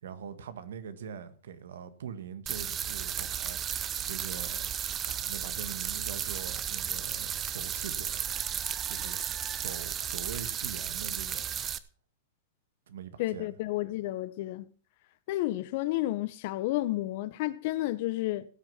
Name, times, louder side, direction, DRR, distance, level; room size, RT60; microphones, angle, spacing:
voice 1, 0.0-4.7 5.1-8.2 8.9-9.2 9.5-11.4 12.9-13.5, right 7 dB, 80° right, 1.6 m, -43 dB
sound 1, 2.5-11.8, right 9 dB, 25° right, 0.8 m, -34 dB
voice 2, 13.2-14.7 15.3-18.5, left 16 dB, 55° left, 1.0 m, -31 dB
17.5 x 6.4 x 5.8 m
hypercardioid pair, 130°, 0 cm